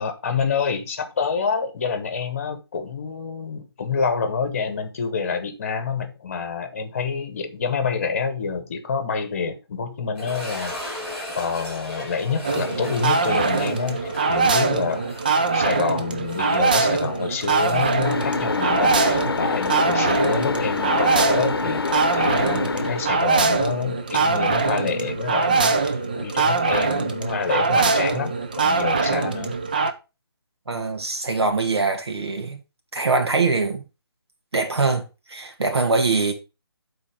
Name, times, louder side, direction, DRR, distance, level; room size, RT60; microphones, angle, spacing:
voice 1, 0.0-11.0 11.4-15.2 15.5-29.6, left 5 dB, 35° left, 1.1 m, -27 dB
sound 1, 10.1-19.1 19.3-19.4 20.0-20.1 22.7-22.8, left 1 dB, ahead, 2.6 m, -36 dB
sound 2, 12.4-29.9, right 4 dB, 20° right, 0.4 m, -22 dB
sound 3, 18.0-23.4, left 5 dB, 65° left, 0.8 m, -26 dB
voice 2, 30.7-32.6 32.9-33.8 34.5-36.3, right 3 dB, 80° right, 2.0 m, -23 dB
7.5 x 4.1 x 4.9 m
hypercardioid pair, 170°, 13 cm